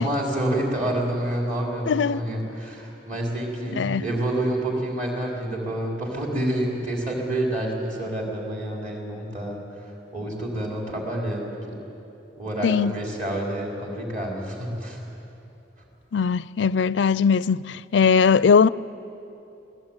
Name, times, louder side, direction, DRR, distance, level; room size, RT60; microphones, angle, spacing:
voice 1, 0.0-9.6 10.1-11.8 12.4-15.1, right 1 dB, 45° right, 4.1 m, -28 dB
voice 2, 1.9-2.2 3.8-4.0 12.6-13.0 16.1-18.7, left 6 dB, 80° left, 0.4 m, -20 dB
27.0 x 17.5 x 9.0 m
head